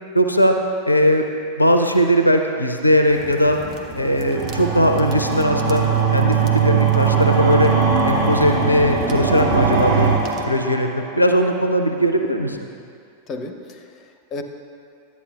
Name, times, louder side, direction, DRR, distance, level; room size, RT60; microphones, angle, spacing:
voice 1, 0.1-0.6 0.9-1.3 1.6-3.6 3.9-5.8 6.1-7.7 8.0-10.1 10.5-12.6, equal, 85° left, 5 dB, 0.4 m, -18 dB
sound 1, 3.1-10.4, right 4 dB, 35° right, 0.7 m, -37 dB
sound 2, 4.3-11.3, right 6 dB, 55° right, 1.2 m, -20 dB
voice 2, 13.3-14.4, left 2 dB, 30° left, 6 dB, 0.6 m, -34 dB
11.5 x 8.2 x 2.4 m, 2.3 s
figure-of-eight pair, 90°, 0 cm